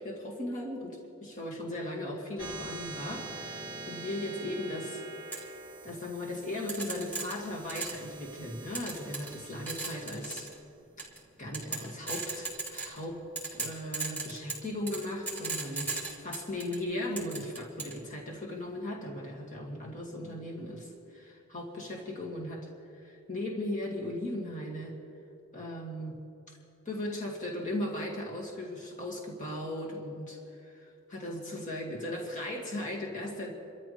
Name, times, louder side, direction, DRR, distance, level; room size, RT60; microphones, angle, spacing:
voice 1, 0.0-5.0 5.8-10.5 11.4-13.2 13.5-15.9 16.2-22.7 23.0-25.0 25.5-26.2 26.9-33.5, left 1 dB, 40° left, -3 dB, 2.4 m, -37 dB
sound 1, 2.4-13.2, right 3 dB, 20° right, 1.8 m, -46 dB
sound 2, 5.3-5.4 6.7-8.1 8.8-9.4 9.7-10.5 11.0-11.2 11.5-13.0 13.4-16.8 17.2-18.0, right 3 dB, 10° left, 3.9 m, -36 dB
29.0 x 14.0 x 3.4 m, 2.7 s
head